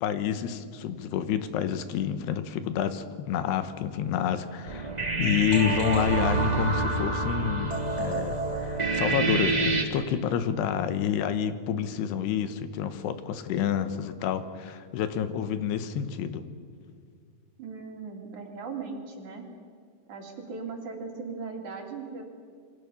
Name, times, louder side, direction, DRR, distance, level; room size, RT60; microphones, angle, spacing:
voice 1, 0.0-4.9 5.2-16.5, left 9 dB, 85° left, 11 dB, 3.3 m, -29 dB
sound 1, 4.7-9.8, right 3 dB, 15° right, 1.4 m, -27 dB
voice 2, 17.6-19.5 20.1-22.2, right 4 dB, 50° right, 2 dB, 3.8 m, -38 dB
27.5 x 23.5 x 7.1 m, 2.1 s
omnidirectional pair, 4.6 m